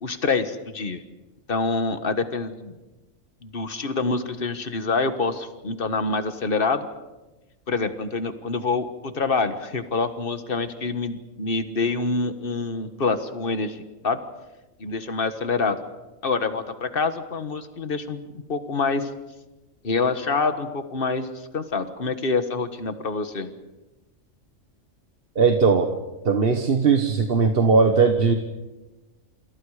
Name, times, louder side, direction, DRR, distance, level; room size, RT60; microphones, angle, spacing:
voice 1, 0.0-1.0 1.5-2.7 3.4-6.9 7.7-14.2 14.8-15.8 16.2-19.1 19.8-23.5, left 4 dB, 45° left, 9 dB, 1.7 m, -26 dB
voice 2, 25.3-25.9 26.2-28.3, right 5 dB, 50° right, 5 dB, 1.5 m, -19 dB
27.5 x 27.0 x 5.0 m, 1.1 s
omnidirectional pair, 1.3 m